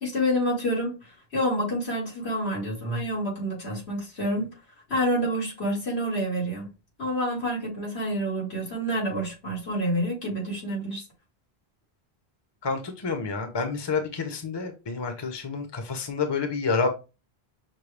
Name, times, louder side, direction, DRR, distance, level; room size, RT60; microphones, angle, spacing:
voice 1, 0.0-4.5 4.9-6.7 7.0-11.0, equal, 90° left, -2 dB, 2.2 m, -28 dB
voice 2, 12.6-16.9, left 4 dB, 25° left, 6 dB, 0.8 m, -29 dB
6.0 x 2.2 x 3.3 m, 0.29 s
omnidirectional pair, 1.0 m